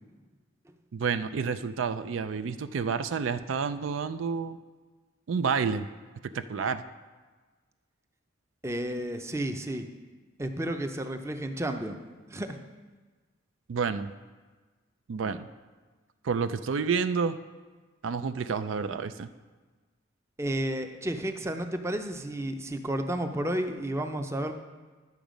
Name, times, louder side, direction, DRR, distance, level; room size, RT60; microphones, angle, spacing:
voice 1, 0.9-4.6 5.3-5.9 6.3-6.8 13.7-14.1 15.1-15.5 16.2-17.4 18.0-19.3, right 5 dB, 75° right, 11 dB, 0.4 m, -29 dB
voice 2, 8.6-9.9 10.4-12.6 20.4-24.5, right 1 dB, 15° right, 6 dB, 0.6 m, -32 dB
10.5 x 7.0 x 5.1 m, 1.3 s
head